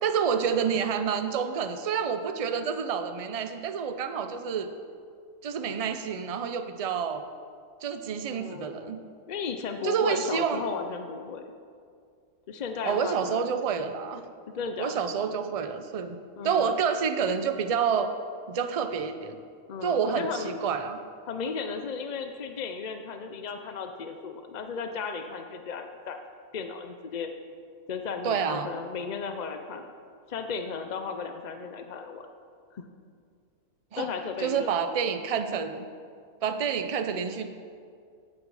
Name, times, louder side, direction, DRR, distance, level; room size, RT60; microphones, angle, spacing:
voice 1, 0.0-4.7 5.4-7.2 7.8-9.0 9.8-10.7 12.8-14.2 14.8-16.2 16.4-18.1 18.5-19.4 19.8-21.0 28.2-28.7 33.9-34.1 34.4-35.9 36.4-37.5, right 7 dB, 50° right, 8 dB, 0.4 m, -28 dB
voice 2, 8.3-9.0 9.3-11.4 12.5-13.5 13.8-14.1 14.5-15.0 16.4-16.7 19.7-20.6 21.3-26.2 26.5-27.3 27.9-29.9 30.3-32.3 32.7-32.8 34.0-34.9, left 5 dB, 60° left, 6 dB, 0.4 m, -35 dB
16.0 x 6.3 x 4.8 m, 2.2 s
omnidirectional pair, 1.4 m